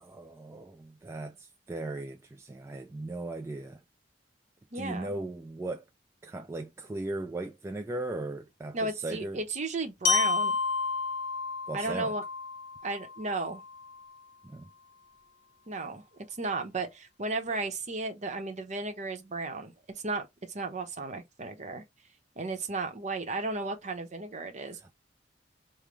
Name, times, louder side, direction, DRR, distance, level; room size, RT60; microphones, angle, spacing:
voice 1, 0.1-3.8 4.7-5.8 6.2-9.4 11.7-12.1 14.4-14.7 24.8-24.9, right 2 dB, 15° right, 0.3 m, -37 dB
voice 2, 4.7-5.2 8.7-10.6 11.7-12.2 12.8-13.6 15.7-16.0 16.4-19.7 20.0-21.8 22.4-24.9, right 3 dB, 40° right, 0.8 m, -34 dB
Glockenspiel, 10.0-14.0, left 4 dB, 65° left, 0.8 m, -31 dB
5.2 x 2.1 x 3.1 m
head